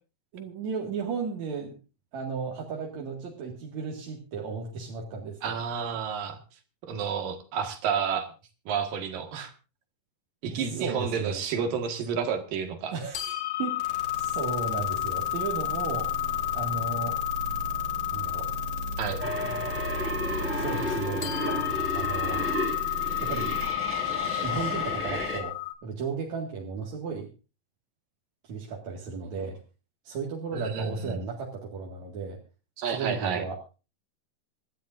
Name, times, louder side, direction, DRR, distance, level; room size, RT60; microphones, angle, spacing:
voice 1, 0.3-1.8 2.1-5.5 10.5-11.4 12.9-13.2 13.6-17.2 18.1-18.5 20.5-21.3 21.9-22.5 23.2-23.5 24.4-25.5 25.8-27.3 28.4-29.6 30.0-32.4 32.9-33.6, right 5 dB, 55° right, -2 dB, 3.1 m, -35 dB
voice 2, 5.4-6.4 6.8-8.3 8.7-9.5 10.4-12.9 19.0-19.2 30.5-31.2 32.8-33.5, right 6 dB, 75° right, 6 dB, 3.5 m, -30 dB
sound 1, 13.1-25.7, left 17 dB, 70° left, 3.3 m, -32 dB
sound 2, 13.8-23.7, right 1 dB, 20° right, 2.8 m, -37 dB
sound 3, 19.2-25.4, equal, 5° right, 4.3 m, -32 dB
26.0 x 12.0 x 2.6 m, 0.32 s
omnidirectional pair, 4.0 m